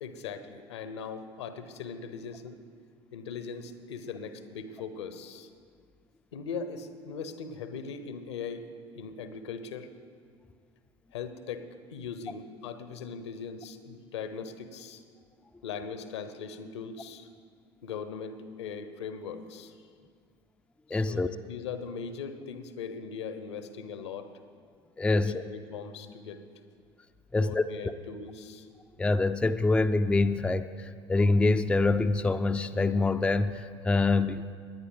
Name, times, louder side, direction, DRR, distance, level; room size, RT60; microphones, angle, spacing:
voice 1, 0.0-2.6 3.1-5.5 6.3-9.9 11.1-15.0 15.6-17.3 17.8-19.9 20.9-24.3 25.1-26.4 27.3-28.7, left 5 dB, 70° left, 10 dB, 0.9 m, -40 dB
voice 2, 20.9-21.3 25.0-25.3 27.3-27.6 29.0-34.5, left 3 dB, 5° left, 10 dB, 0.4 m, -25 dB
19.0 x 9.8 x 4.0 m, 2.1 s
figure-of-eight pair, 65°, 15 cm